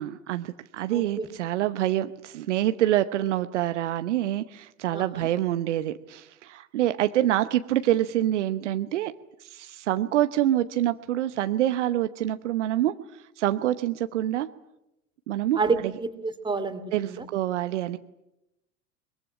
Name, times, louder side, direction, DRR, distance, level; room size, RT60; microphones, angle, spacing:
voice 1, 0.0-9.1 9.4-12.9 13.4-14.5 15.3-15.6 16.9-18.0, right 13 dB, 65° right, 11 dB, 1.0 m, -26 dB
voice 2, 0.9-1.3 4.9-5.3 15.6-17.2, right 4 dB, 10° right, 7 dB, 2.9 m, -29 dB
22.5 x 22.0 x 9.8 m, 0.89 s
figure-of-eight pair, 75°, 39 cm